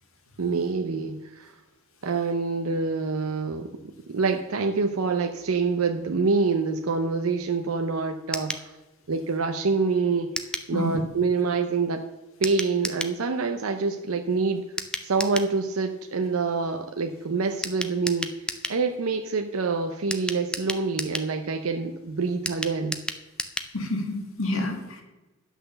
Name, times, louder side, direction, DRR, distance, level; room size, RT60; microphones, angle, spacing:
voice 1, 0.4-1.5 2.0-3.7 4.1-8.7 9.1-10.3 10.7-12.0 12.4-14.6 15.0-18.3 18.7-23.0, right 4 dB, 85° right, 6 dB, 0.7 m, -26 dB
sound 1, 8.3-8.7 10.4-10.7 12.4-13.2 14.8-15.5 17.6-18.8 20.1-21.3 22.5-23.7 24.0-24.1 24.4-24.5, left 1 dB, 5° left, 0.5 m, -32 dB
voice 2, 23.7-25.0, left 1 dB, 75° left, 3 dB, 1.9 m, -28 dB
10.0 x 6.0 x 6.7 m, 1.1 s
head